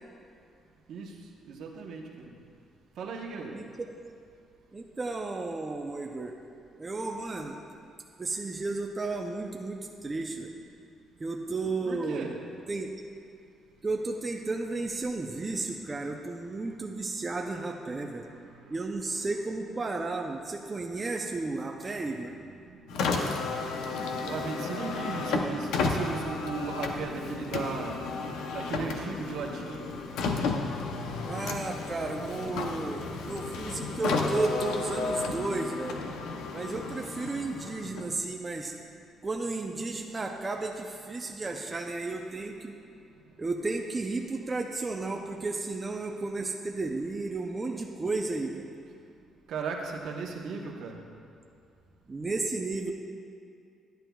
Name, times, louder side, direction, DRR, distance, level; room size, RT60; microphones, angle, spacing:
voice 1, 1.4-2.3 3.0-3.5 11.9-12.3 18.5-18.6 23.1-23.9 24.2-28.0 28.5-29.9 32.2-34.0 36.3-36.4 49.5-51.0, right 4 dB, 70° right, 1 dB, 1.0 m, -37 dB
voice 2, 4.7-6.4 6.8-7.6 8.2-10.5 11.2-12.4 12.7-12.9 13.8-18.3 18.7-22.4 31.2-36.1 36.5-38.8 39.2-42.8 43.4-48.7 52.1-52.9, right 3 dB, 20° right, 1 dB, 0.5 m, -33 dB
Car, 22.9-38.3, left 4 dB, 90° left, 0.6 m, -33 dB
11.0 x 10.5 x 2.3 m, 2.4 s
cardioid pair, 130°, 0 cm